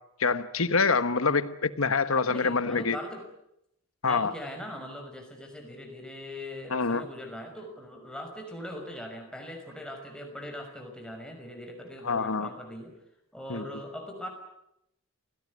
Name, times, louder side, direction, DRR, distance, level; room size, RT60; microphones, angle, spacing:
voice 1, 0.2-3.0 4.0-4.3 6.7-7.0 12.0-12.5 13.5-13.6, left 4 dB, 70° left, 13 dB, 1.3 m, -26 dB
voice 2, 2.3-3.2 4.1-12.9 13.3-14.3, left 1 dB, 5° left, 3 dB, 5.7 m, -40 dB
27.5 x 17.5 x 9.6 m, 0.82 s
head